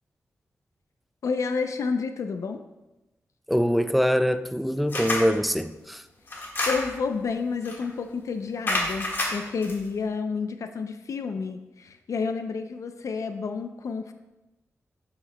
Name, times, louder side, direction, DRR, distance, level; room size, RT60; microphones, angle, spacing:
voice 1, 1.2-2.6 6.7-14.1, left 5 dB, 70° left, 7 dB, 0.5 m, -30 dB
voice 2, 3.5-6.0, equal, ahead, 10 dB, 0.3 m, -24 dB
sound 1, 4.9-5.3 6.3-7.1 7.6-7.9 8.7-9.7, left 1 dB, 40° left, 1.6 m, -28 dB
9.4 x 7.2 x 2.2 m, 1.0 s
wide cardioid pair, 100°, 6 cm